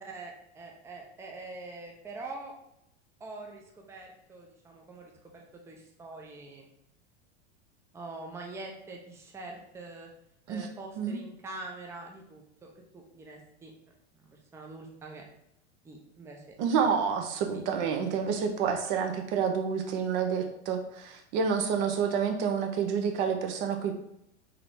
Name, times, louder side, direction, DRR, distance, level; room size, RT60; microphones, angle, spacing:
voice 1, 0.0-2.5 3.2-6.7 7.9-10.1 10.5-13.7 14.2-15.2 15.8-16.5 17.5-17.6 18.5-18.6, right 2 dB, 10° right, 1 dB, 0.5 m, -44 dB
voice 2, 16.6-23.9, right 6 dB, 50° right, 5 dB, 0.7 m, -29 dB
3.9 x 2.8 x 3.4 m, 0.80 s
hypercardioid pair, 95°, 34 cm